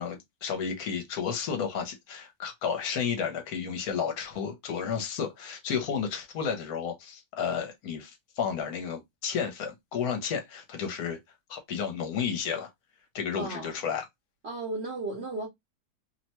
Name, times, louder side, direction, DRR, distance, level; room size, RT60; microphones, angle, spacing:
voice 1, 0.0-11.2 11.5-12.7 13.1-14.0, left 7 dB, 70° left, 1.2 m, -32 dB
voice 2, 13.3-13.7 14.4-15.5, right 2 dB, 55° right, 0.7 m, -34 dB
2.9 x 2.1 x 2.8 m
omnidirectional pair, 1.7 m